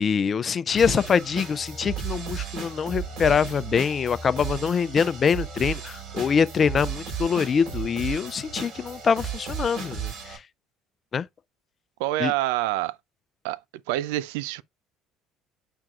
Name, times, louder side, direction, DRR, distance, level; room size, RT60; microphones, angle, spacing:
voice 1, 0.0-10.4 11.1-11.2 12.2-12.3, left 6 dB, 40° left, 0.4 m, -24 dB
sound 1, 0.8-10.4, right 7 dB, 65° right, 4.6 m, -34 dB
voice 2, 12.0-13.0 13.4-13.6 13.9-14.6, right 16 dB, 80° right, 0.3 m, -26 dB
8.7 x 4.6 x 2.4 m
hypercardioid pair, 70°, 0 cm